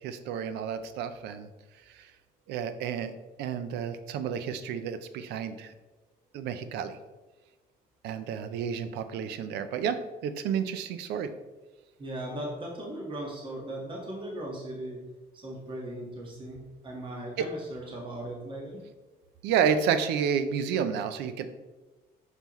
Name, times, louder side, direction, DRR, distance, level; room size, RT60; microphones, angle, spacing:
voice 1, 0.0-1.5 1.9-2.1 2.5-3.1 3.4-5.7 6.3-7.0 8.0-11.3 17.4-17.5 19.4-21.4, right 7 dB, 85° right, 11 dB, 0.5 m, -30 dB
voice 2, 12.0-15.0 15.3-18.8, right 1 dB, 30° right, -2 dB, 1.5 m, -38 dB
5.8 x 5.5 x 3.0 m, 1.2 s
cardioid pair, 110°, 17 cm